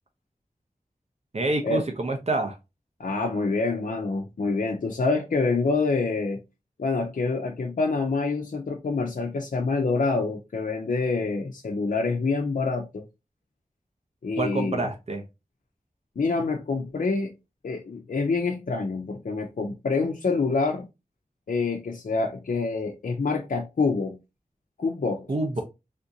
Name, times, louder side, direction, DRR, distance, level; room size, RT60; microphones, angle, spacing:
voice 1, 1.3-2.5 14.4-15.2 25.3-25.6, right 2 dB, 50° right, 0.6 m, -27 dB
voice 2, 3.0-6.4 6.8-13.0 14.2-14.9 16.2-17.3 17.6-20.9 21.5-24.2 24.8-25.3, left 3 dB, 70° left, 0.5 m, -26 dB
3.5 x 2.5 x 2.7 m
wide cardioid pair, 70°, 14 cm